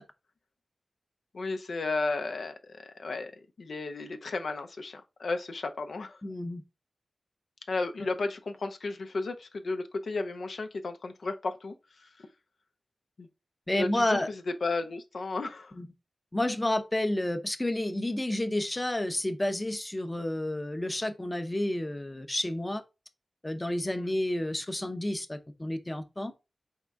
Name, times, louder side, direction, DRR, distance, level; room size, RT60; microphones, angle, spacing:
voice 1, 1.3-3.3 3.6-6.2 7.7-12.3 13.2-13.3 13.8-14.2 14.6-15.7 23.9-24.1, left 3 dB, 80° left, 0.5 m, -34 dB
voice 2, 6.2-6.6 8.0-8.1 13.7-14.3 15.8-15.9 16.3-22.8 23.4-26.3, left 1 dB, 20° left, 0.6 m, -30 dB
4.2 x 3.6 x 3.4 m
wide cardioid pair, 70°, 0 cm